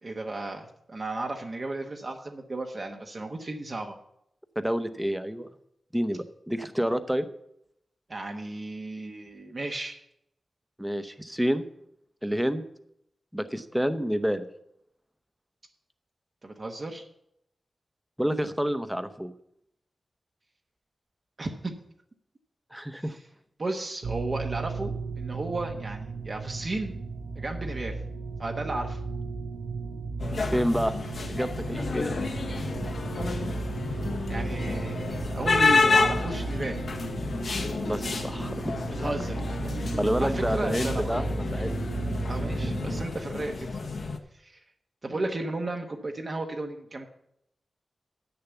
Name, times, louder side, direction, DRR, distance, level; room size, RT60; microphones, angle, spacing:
voice 1, 0.0-4.0 8.1-10.0 16.4-17.0 21.4-21.7 23.0-23.2 23.6-27.0 27.4-28.0 28.4-29.0 34.3-36.8 39.0-39.8 40.2-41.1 42.3-43.7 44.3-44.6 45.0-47.1, right 2 dB, 45° right, 2 dB, 1.1 m, -34 dB
voice 2, 4.6-5.5 5.9-7.3 10.8-11.7 12.2-12.6 13.3-14.4 18.2-19.3 22.7-23.2 30.5-30.9 31.3-32.1 37.9-38.7 40.0-41.7 45.1-45.3, equal, 5° right, 10 dB, 0.8 m, -28 dB
sound 1, 24.0-43.0, right 3 dB, 80° right, 0.7 m, -34 dB
sound 2, 30.2-44.2, left 4 dB, 70° left, 1.2 m, -30 dB
sound 3, 31.7-42.9, left 4 dB, 90° left, 1.0 m, -41 dB
9.5 x 6.9 x 7.0 m, 0.75 s
wide cardioid pair, 95°, 0 cm